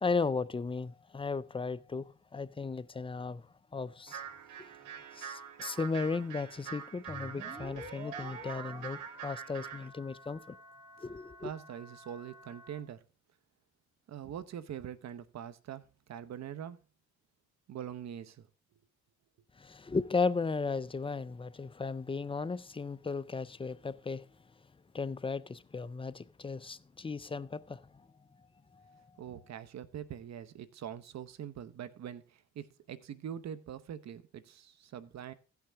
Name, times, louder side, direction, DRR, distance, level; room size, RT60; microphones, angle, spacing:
voice 1, 0.0-3.4 3.7-4.2 5.1-10.6 11.0-11.5 19.6-24.3 24.9-27.9, left 4 dB, 20° left, 0.6 m, -35 dB
sound 1, 4.1-9.9, right 8 dB, 85° right, 1.2 m, -45 dB
sound 2, 7.1-12.8, right 1 dB, 15° right, 2.5 m, -49 dB
voice 2, 11.4-13.0 14.1-16.8 17.7-18.5 29.2-35.3, right 9 dB, 60° right, 1.0 m, -43 dB
16.0 x 5.9 x 3.6 m
cardioid pair, 90°, 30 cm